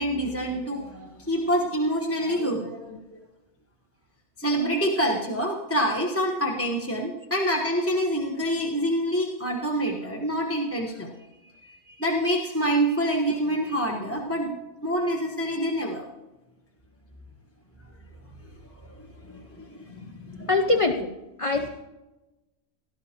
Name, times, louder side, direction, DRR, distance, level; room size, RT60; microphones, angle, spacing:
voice 1, 0.0-3.2 4.4-11.1 11.6-14.5 14.8-16.0 19.2-20.5, equal, 10° left, -1 dB, 1.1 m, -27 dB
voice 2, 20.5-21.1 21.4-21.7, left 2 dB, 35° left, 4 dB, 0.5 m, -23 dB
18.5 x 11.5 x 3.0 m, 1.1 s
omnidirectional pair, 1.5 m